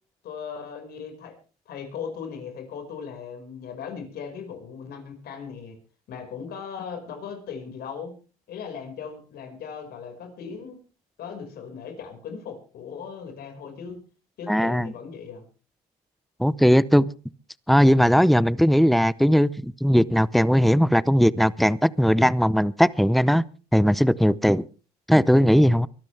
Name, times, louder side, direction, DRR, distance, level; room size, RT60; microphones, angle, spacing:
voice 1, 0.2-1.4 1.7-5.8 6.1-8.2 8.5-10.8 11.2-14.0 14.4-15.4, left 6 dB, 70° left, 6 dB, 5.2 m, -38 dB
voice 2, 14.5-14.9 16.4-17.1 17.7-23.4 23.7-24.6 25.1-25.9, equal, ahead, 19 dB, 0.6 m, -19 dB
23.5 x 13.5 x 3.4 m, 0.37 s
cardioid pair, 110°, 17 cm